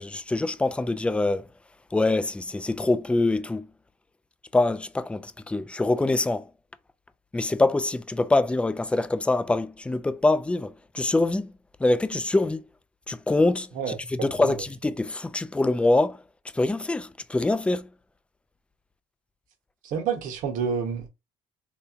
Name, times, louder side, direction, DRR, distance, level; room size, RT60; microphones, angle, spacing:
voice 1, 0.0-1.5 1.9-3.7 4.5-6.5 7.3-11.5 11.8-12.7 13.1-16.2 16.5-17.9, left 2 dB, 10° left, 0.3 m, -24 dB
voice 2, 19.8-21.1, right 6 dB, 75° right, 1.0 m, -28 dB
3.3 x 2.8 x 2.4 m
cardioid pair, 90°, 14 cm